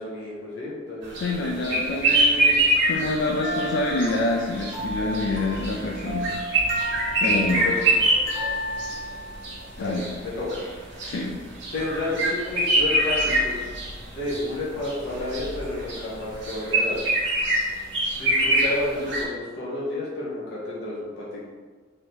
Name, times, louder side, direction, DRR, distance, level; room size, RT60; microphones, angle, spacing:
voice 1, 0.0-1.1 1.4-1.8 7.6-7.9 9.8-10.6 11.7-13.6 14.1-17.0 18.1-21.4, left 2 dB, 60° left, -7 dB, 0.9 m, -31 dB
sound 1, 1.0-19.2, right 1 dB, 70° right, 1.2 m, -25 dB
voice 2, 1.1-6.3 7.2-7.7 9.8-10.1 11.0-11.4, left 2 dB, 75° left, 1 dB, 0.4 m, -27 dB
sound 2, 3.4-9.7, equal, 30° right, 1.2 m, -33 dB
3.2 x 2.7 x 4.3 m, 1.5 s
head